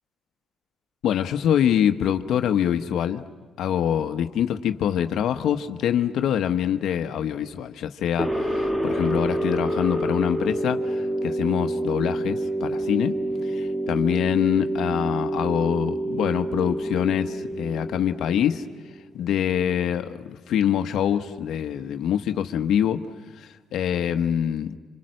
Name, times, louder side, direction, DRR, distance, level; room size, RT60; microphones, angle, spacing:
voice 1, 1.0-3.2 3.6-13.1 13.5-18.6 19.1-23.0 23.4-24.7, left 9 dB, 75° left, 7 dB, 1.0 m, -25 dB
sound 1, 8.2-19.1, right 1 dB, 10° right, 2.0 m, -28 dB
28.5 x 27.0 x 6.5 m, 1.4 s
cardioid pair, 90°, 0 cm